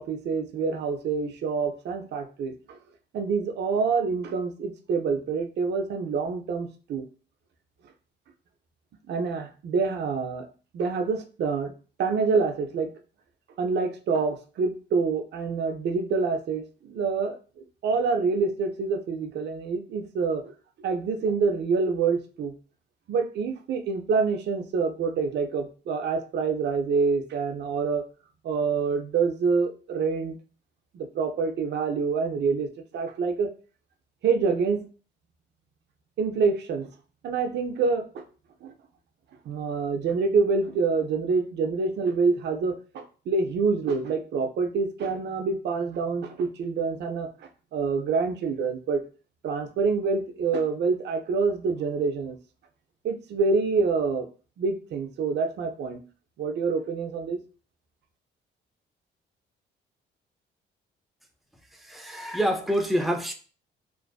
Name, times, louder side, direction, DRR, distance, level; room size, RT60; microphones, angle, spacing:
voice 1, 0.0-2.8 3.1-7.1 9.1-10.5 10.7-11.7 12.0-12.9 13.6-17.4 17.8-20.5 20.8-22.5 23.1-28.0 28.4-30.4 30.9-33.5 34.2-34.9 36.2-36.9 37.2-38.2 38.6-38.7 39.5-49.0 49.4-52.4 53.0-54.3 54.6-56.0 56.4-57.4, right 4 dB, 60° right, 6 dB, 0.5 m, -26 dB
voice 2, 61.8-63.3, equal, ahead, 4 dB, 0.4 m, -26 dB
2.5 x 2.4 x 2.2 m, 0.37 s
cardioid pair, 90°, 20 cm